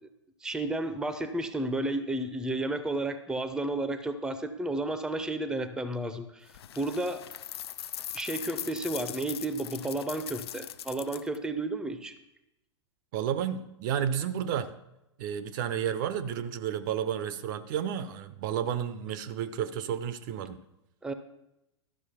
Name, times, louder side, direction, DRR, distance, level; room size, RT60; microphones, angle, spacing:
voice 1, 0.4-6.5 6.7-7.2 8.1-12.1 21.0-21.1, right 2 dB, 5° right, 10 dB, 0.7 m, -32 dB
sound 1, 6.5-11.4, left 11 dB, 60° left, 0.5 m, -40 dB
voice 2, 13.1-14.7 15.2-20.6, right 9 dB, 45° right, 13 dB, 0.7 m, -31 dB
12.5 x 6.2 x 5.8 m, 0.87 s
figure-of-eight pair, 100°, 15 cm